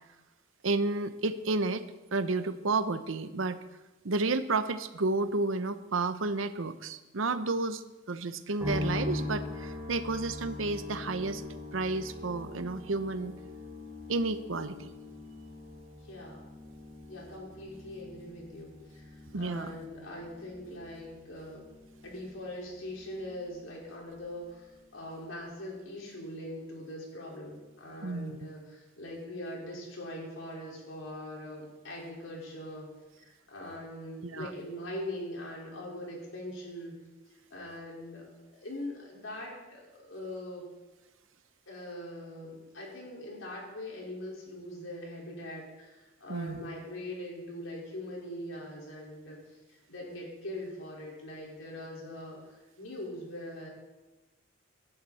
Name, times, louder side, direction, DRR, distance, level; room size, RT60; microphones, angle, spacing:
voice 1, 0.6-1.8 2.1-3.6 4.0-7.8 8.1-11.4 11.7-13.3 14.1-14.9 19.3-19.7 28.0-28.5 34.2-34.5 46.3-46.6, right 3 dB, 80° right, 12 dB, 0.8 m, -31 dB
sound 1, 8.6-23.8 24.1-25.0, left 2 dB, 10° right, 5.1 m, -42 dB
voice 2, 16.0-16.4 17.1-21.7 22.0-36.9 37.5-38.2 38.5-40.7 41.7-49.4 49.7-52.4 52.8-53.7, left 1 dB, 90° left, -3 dB, 4.7 m, -42 dB
18.0 x 11.0 x 4.2 m, 1.1 s
head